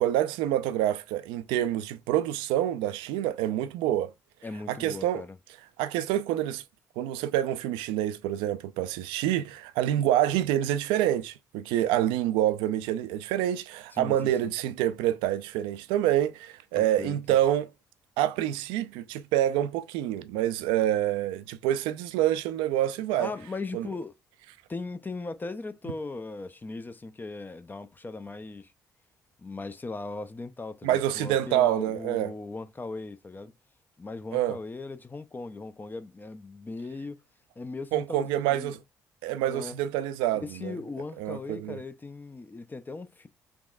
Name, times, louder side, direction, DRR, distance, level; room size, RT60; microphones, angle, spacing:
voice 1, 0.0-4.1 4.7-5.2 5.8-6.6 7.0-17.7 18.2-23.3 23.7-23.9 30.8-32.3 34.3-34.6 37.9-38.8 39.2-40.7 41.2-41.8, right 12 dB, 70° right, 0.4 m, -27 dB
voice 2, 4.4-5.4 13.9-14.5 16.7-17.2 23.1-24.2 24.7-28.7 29.4-33.5 34.0-37.2 37.6-38.7 39.5-39.8 40.3-43.3, left 3 dB, 20° left, 0.5 m, -38 dB
3.5 x 3.0 x 2.3 m
figure-of-eight pair, 45°, 9 cm